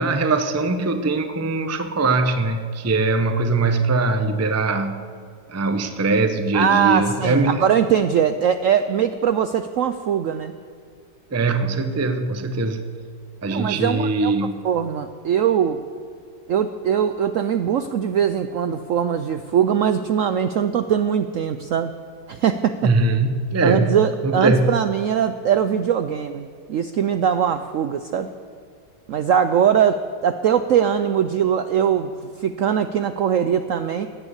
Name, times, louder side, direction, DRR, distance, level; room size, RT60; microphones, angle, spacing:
voice 1, 0.0-5.0 5.5-7.6 11.3-12.8 13.4-14.6 22.8-24.0 24.2-24.8, right 3 dB, 25° right, 7 dB, 0.3 m, -21 dB
voice 2, 6.5-10.5 13.5-14.3 14.6-15.8 16.5-21.9 22.3-22.9 23.6-28.3 29.1-32.1 32.4-34.1, right 8 dB, 75° right, 10 dB, 0.7 m, -21 dB
16.5 x 10.0 x 8.2 m, 2.1 s
omnidirectional pair, 1.9 m